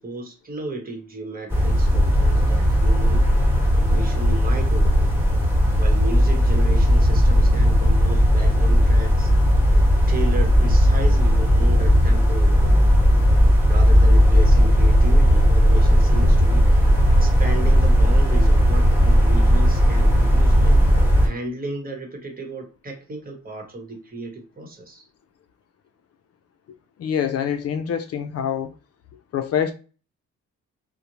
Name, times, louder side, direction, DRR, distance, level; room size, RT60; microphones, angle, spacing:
voice 1, 0.0-3.3 3.7-5.1 5.8-9.3 10.1-13.0 13.6-16.8 17.1-20.8 21.2-25.1, right 2 dB, 30° right, 1.0 m, -34 dB
sound 1, 1.5-21.3, equal, 10° right, 1.3 m, -16 dB
voice 2, 27.0-28.7 29.3-29.7, left 8 dB, 55° left, 0.5 m, -25 dB
2.5 x 2.1 x 2.9 m
cardioid pair, 90°, 30 cm